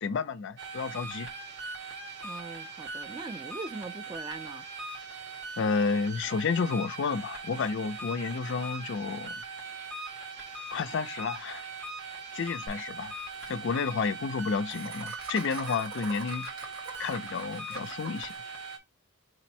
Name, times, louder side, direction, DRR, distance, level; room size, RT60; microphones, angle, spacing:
voice 1, 0.0-1.3 5.6-9.4 10.7-11.6 12.3-13.1 13.5-16.5 17.0-18.3, left 5 dB, 55° left, 0.4 m, -31 dB
sound 1, 0.6-18.8, right 3 dB, 55° right, 0.9 m, -40 dB
voice 2, 2.2-4.6, right 3 dB, 20° right, 0.3 m, -41 dB
Laughter, 12.7-12.8 13.0-13.1 13.3-13.5 14.7-18.4, right 3 dB, 80° right, 1.4 m, -42 dB
4.9 x 2.1 x 4.2 m
head